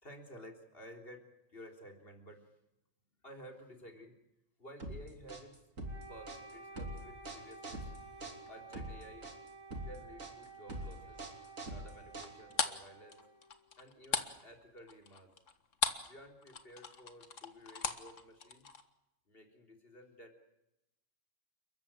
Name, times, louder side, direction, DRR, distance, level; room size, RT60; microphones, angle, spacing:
voice 1, 0.0-2.5 3.2-4.1 4.6-5.6 6.1-7.9 8.5-9.3 9.9-11.2 11.7-13.2 13.8-15.3 16.1-18.7 19.3-20.4, equal, 45° left, 3 dB, 4.0 m, -53 dB
sound 1, 4.8-12.7, right 1 dB, 85° right, 3.4 m, -44 dB
Wind instrument woodwind instrument, 5.8-13.9, right 4 dB, 55° right, 4.9 m, -53 dB
sound 2, 12.1-16.2 16.4-18.8, left 5 dB, 70° left, 1.9 m, -37 dB
29.5 x 14.0 x 9.0 m, 0.90 s
omnidirectional pair, 1.3 m